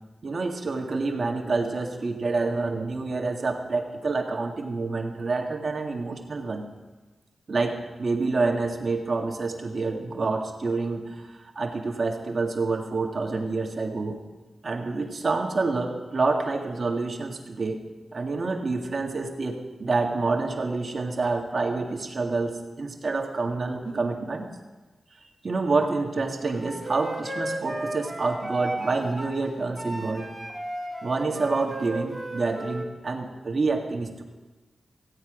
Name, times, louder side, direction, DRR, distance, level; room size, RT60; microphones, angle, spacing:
voice 1, 0.2-6.6 7.5-11.3 11.6-14.2 14.6-17.8 18.1-24.5 25.4-30.3 31.0-34.2, right 3 dB, 50° right, 2 dB, 1.8 m, -27 dB
Wind instrument woodwind instrument, 26.6-29.4 29.8-32.9, right 1 dB, 10° right, 2.5 m, -34 dB
15.5 x 9.4 x 5.0 m, 1.2 s
cardioid pair, 65°, 0 cm